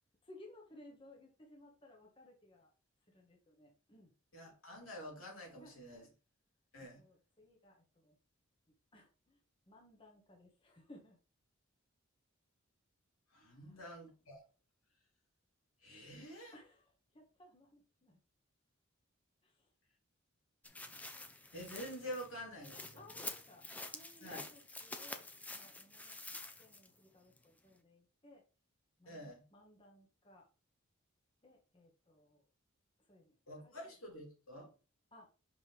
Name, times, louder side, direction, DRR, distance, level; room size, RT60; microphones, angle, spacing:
voice 1, 0.2-2.7 3.1-4.1 5.5-6.1 7.0-8.2 8.9-9.4 9.7-11.2 13.5-13.8 16.5-18.2 19.4-19.7 23.0-25.3 25.5-26.2 26.6-28.4 29.0-30.5 31.4-32.4 33.0-33.9 35.1-35.3, left 1 dB, 25° left, 1.2 m, -61 dB
voice 2, 4.3-6.1 6.7-7.0 13.3-14.4 15.8-16.6 21.5-23.0 24.2-24.5 29.0-29.4 33.5-34.7, equal, 80° left, 3.3 m, -48 dB
sound 1, 20.6-27.0 27.4-27.5, left 2 dB, 5° left, 0.6 m, -48 dB
6.1 x 5.4 x 3.4 m
head